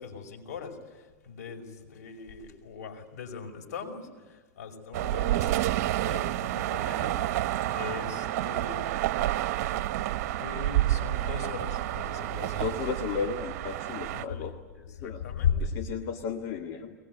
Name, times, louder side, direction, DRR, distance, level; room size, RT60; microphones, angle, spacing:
voice 1, 0.0-5.7 6.0-7.2 7.5-9.4 10.4-12.7 14.1-14.5 14.7-15.8, left 6 dB, 75° left, 3 dB, 5.5 m, -37 dB
sound 1, 4.9-14.2, right 14 dB, 65° right, 1.1 m, -29 dB
voice 2, 12.6-14.5 15.0-15.2 15.8-16.9, left 6 dB, 45° left, 4 dB, 1.9 m, -34 dB
22.5 x 20.5 x 9.4 m, 1.4 s
hypercardioid pair, 115°, 9 cm